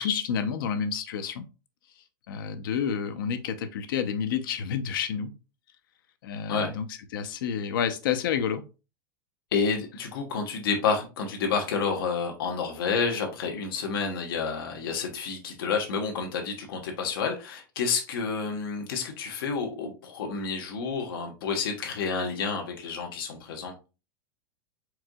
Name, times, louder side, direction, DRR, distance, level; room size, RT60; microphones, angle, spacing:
voice 1, 0.0-1.4 2.3-5.3 6.2-6.9 7.1-8.6, left 7 dB, 70° left, 0.7 m, -29 dB
voice 2, 9.5-23.7, left 5 dB, 85° left, 1.2 m, -29 dB
4.6 x 3.7 x 2.3 m
supercardioid pair, 170°, 12 cm